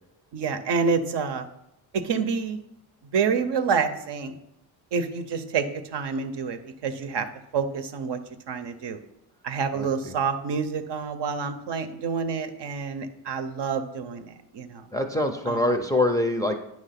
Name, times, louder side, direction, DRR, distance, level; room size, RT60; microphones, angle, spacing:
voice 1, 0.3-1.5 1.9-2.6 3.1-4.4 4.9-5.6 5.9-7.3 7.5-8.2 8.5-9.0 9.4-14.8 15.5-15.7, right 5 dB, 60° right, 8 dB, 0.8 m, -28 dB
voice 2, 9.7-10.1 14.9-16.6, left 1 dB, 10° left, 2 dB, 0.5 m, -25 dB
9.2 x 3.1 x 5.8 m, 0.82 s
cardioid pair, 105°, 47 cm